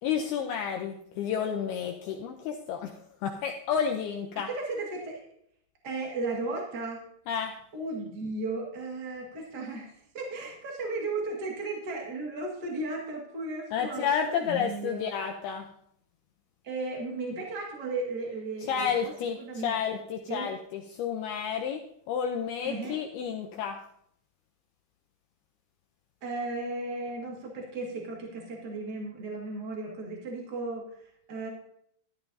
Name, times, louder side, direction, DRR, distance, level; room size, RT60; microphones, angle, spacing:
voice 1, 0.0-4.5 7.3-7.5 13.7-15.7 18.7-21.8 22.1-23.8, left 7 dB, 85° left, 3 dB, 2.2 m, -31 dB
voice 2, 4.3-5.3 5.8-7.0 7.7-15.1 16.6-19.1 19.4-19.7 20.3-20.5 22.6-23.0 26.2-31.5, right 2 dB, 60° right, -1 dB, 1.0 m, -35 dB
12.5 x 12.0 x 2.7 m, 0.69 s
omnidirectional pair, 5.4 m